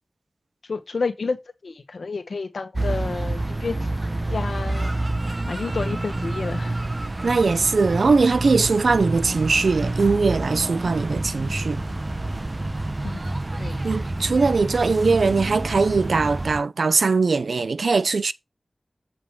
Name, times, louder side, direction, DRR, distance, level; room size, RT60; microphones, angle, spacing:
voice 1, 0.6-1.4 1.6-3.9 4.3-5.0 5.3-6.8 13.0-13.2 13.6-13.9, left 4 dB, 85° left, 1.4 m, -30 dB
sound 1, 2.7-16.6, right 2 dB, 40° right, 1.1 m, -28 dB
voice 2, 7.2-11.8 13.8-18.3, right 4 dB, 85° right, 0.5 m, -21 dB
8.2 x 5.2 x 4.7 m
cardioid pair, 45°, 0 cm